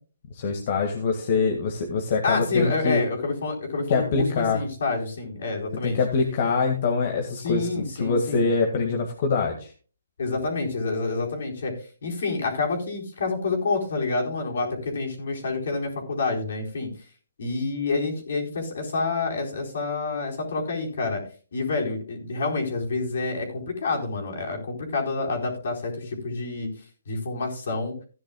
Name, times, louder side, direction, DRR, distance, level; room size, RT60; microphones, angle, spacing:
voice 1, 0.3-3.0 3.9-4.6 5.8-9.7, left 4 dB, 45° left, 2 dB, 2.0 m, -24 dB
voice 2, 2.2-6.0 7.4-8.5 10.2-11.7 12.0-16.9 17.4-21.2 21.5-26.7 27.1-27.9, left 3 dB, 65° left, 1 dB, 4.3 m, -28 dB
16.0 x 10.0 x 2.3 m, 0.37 s
hypercardioid pair, 150°, 0 cm